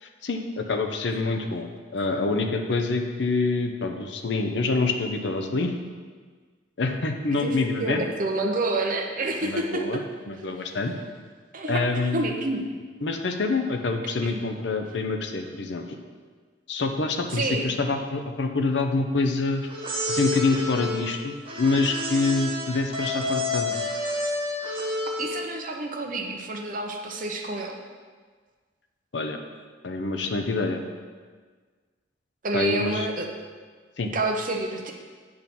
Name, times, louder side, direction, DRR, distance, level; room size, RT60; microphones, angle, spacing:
voice 1, 0.0-5.7 6.8-8.0 9.4-10.0 10.3-10.9 11.7-12.3 13.0-15.8 16.7-19.7 20.1-23.7 29.1-29.4 29.8-30.8 32.5-33.1 34.0-34.1, left 3 dB, 70° left, 5 dB, 0.7 m, -26 dB
voice 2, 7.4-9.9 11.5-12.6 14.2-14.4 17.3-17.7 25.2-27.8 32.4-33.3 34.1-34.9, right 2 dB, 45° right, 2 dB, 0.8 m, -28 dB
sound 1, 19.7-25.6, left 1 dB, 30° right, 1.2 m, -30 dB
8.7 x 3.7 x 6.0 m, 1.5 s
head